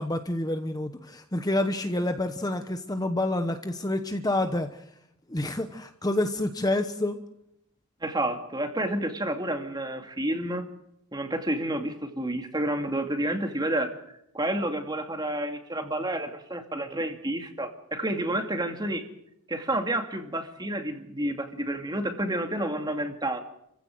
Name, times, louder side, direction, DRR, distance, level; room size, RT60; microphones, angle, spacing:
voice 1, 0.0-4.8 5.3-7.2, left 1 dB, 15° left, 7 dB, 1.0 m, -28 dB
voice 2, 8.0-10.7 11.1-14.0 14.3-19.0 19.5-23.4, right 1 dB, 20° right, 5 dB, 2.5 m, -30 dB
29.5 x 16.0 x 7.9 m, 0.79 s
head